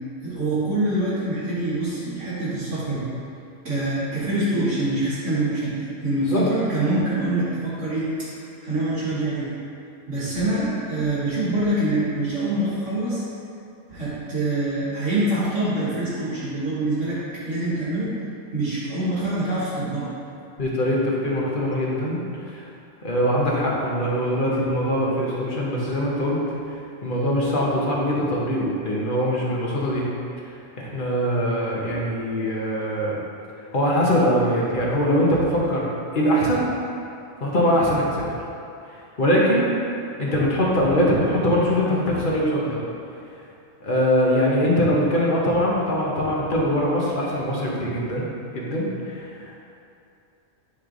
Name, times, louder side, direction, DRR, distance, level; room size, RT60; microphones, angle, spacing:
voice 1, 0.2-3.1 3.7-8.3 8.6-9.5 10.1-13.2 13.9-18.1 18.5-20.1, right 1 dB, 75° right, -10 dB, 1.8 m, -25 dB
voice 2, 20.6-22.2 22.5-22.6 23.0-26.4 27.0-30.1 30.8-33.2 33.7-35.9 36.1-36.6 37.4-38.2 39.2-39.7 40.2-42.8 43.8-48.3 48.5-49.3, equal, 45° left, -4 dB, 1.2 m, -22 dB
9.4 x 3.2 x 3.9 m, 2.6 s
omnidirectional pair, 1.3 m